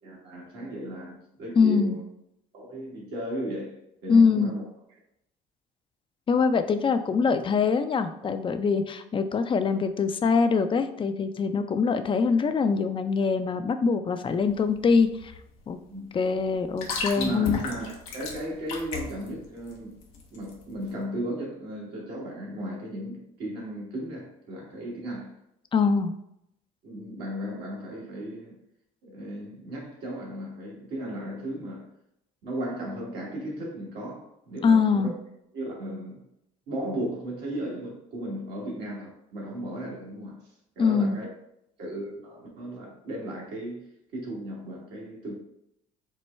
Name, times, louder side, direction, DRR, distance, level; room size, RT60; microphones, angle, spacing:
voice 1, 0.0-2.0 2.5-3.7 4.0-4.6 15.9-16.1 17.1-19.9 20.3-25.3 26.8-28.6 29.0-31.8 32.4-35.1 35.5-36.2 36.7-40.4 40.8-41.3 41.8-45.3, right 1 dB, 70° right, 1.4 m, -35 dB
voice 2, 1.6-2.0 4.1-4.6 6.3-15.3 15.7-15.8 16.1-17.6 25.7-26.1 34.6-35.1 40.8-41.2, left 5 dB, 30° left, 0.4 m, -23 dB
sound 1, 14.2-21.0, left 4 dB, 90° left, 0.7 m, -36 dB
4.4 x 2.2 x 3.2 m
hypercardioid pair, 65°, 18 cm